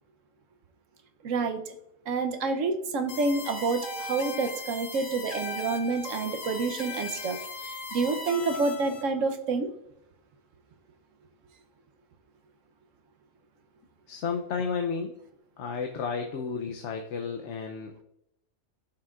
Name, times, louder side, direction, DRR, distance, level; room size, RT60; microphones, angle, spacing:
voice 1, 1.2-1.6 2.1-7.4 7.7-9.7, right 4 dB, 85° right, 6 dB, 1.2 m, -28 dB
sound 1, 3.1-9.0, left 2 dB, 90° left, 1.7 m, -38 dB
voice 2, 14.1-15.1 15.6-17.9, left 5 dB, 70° left, 3 dB, 1.0 m, -32 dB
14.5 x 5.8 x 2.4 m, 0.79 s
omnidirectional pair, 1.3 m